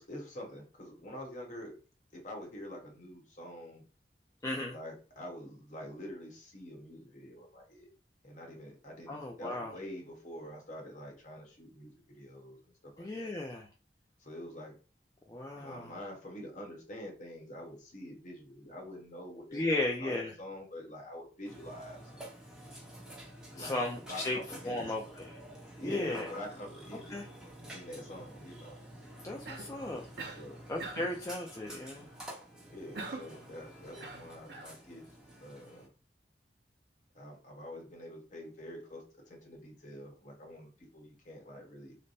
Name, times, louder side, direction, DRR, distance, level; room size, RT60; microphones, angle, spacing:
voice 1, 0.0-1.8 2.1-3.8 4.7-7.9 8.2-13.3 14.2-14.7 15.6-19.7 20.0-22.1 23.3-23.8 24.1-24.8 25.8-27.2 27.7-28.8 30.2-30.7 30.9-31.1 32.7-35.1 35.4-35.9 37.1-42.0, left 1 dB, 45° left, 0 dB, 1.2 m, -46 dB
voice 2, 4.4-4.7 9.1-9.7 13.0-13.7 15.3-15.9 19.5-20.3 23.6-24.4 24.7-25.4 25.8-26.3 27.1-27.3 29.2-30.0 30.7-32.1, left 2 dB, 20° left, -1 dB, 0.4 m, -35 dB
Burping eructation, 21.4-35.9, right 1 dB, 5° right, 0.9 m, -50 dB
Cough, 29.4-29.8 30.2-30.5 30.8-31.2 32.9-33.4 34.0-34.7, right 3 dB, 65° right, 0.7 m, -42 dB
3.3 x 2.1 x 4.0 m, 0.36 s
head